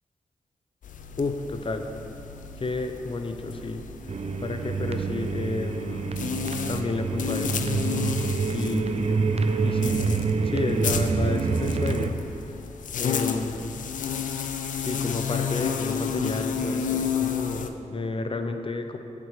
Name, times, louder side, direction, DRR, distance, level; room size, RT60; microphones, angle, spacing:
sound 1, 0.8-17.7, left 7 dB, 90° left, 0.5 m, -32 dB
voice 1, 1.2-1.9 2.6-3.8 4.4-6.1 6.7-7.7 8.5-9.3 9.6-10.0 10.4-12.2 13.0-13.7 14.8-19.0, left 3 dB, 45° left, 7 dB, 0.7 m, -31 dB
sound 2, 4.1-12.1, right 4 dB, 55° right, 0.6 m, -27 dB
8.5 x 7.7 x 5.0 m, 2.8 s
cardioid pair, 60°, 13 cm